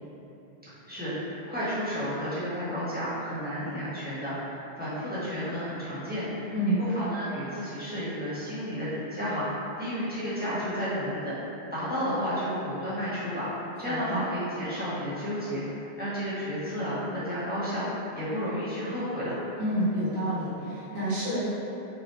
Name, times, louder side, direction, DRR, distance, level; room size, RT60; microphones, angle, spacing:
voice 1, 0.9-6.5 6.8-11.3 11.7-19.4, equal, 10° right, -13 dB, 1.3 m, -32 dB
voice 2, 13.8-14.2 19.6-21.4, right 1 dB, 45° right, -14 dB, 1.6 m, -28 dB
4.8 x 2.5 x 3.4 m, 3.0 s
omnidirectional pair, 1.1 m